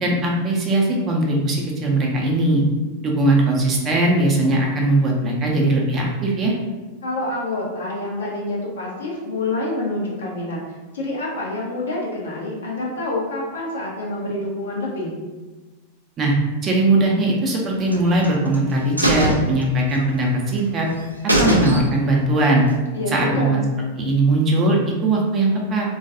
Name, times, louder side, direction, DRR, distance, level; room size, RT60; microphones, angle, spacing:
voice 1, 0.0-2.6 3.0-6.5 16.2-16.3 16.6-20.9 21.4-22.6 23.1-23.6 24.0-25.9, right 2 dB, 25° right, -1 dB, 0.5 m, -19 dB
voice 2, 7.0-10.6 10.9-15.2 22.9-23.6, left 2 dB, 65° left, -4 dB, 0.6 m, -27 dB
sound 1, 17.9-18.6 19.0-20.3 20.6-20.7 21.0-21.1 21.3-22.2 22.5-22.6, right 1 dB, 85° right, 0.3 m, -21 dB
2.3 x 2.2 x 2.7 m, 1.2 s
figure-of-eight pair, 90°, 0 cm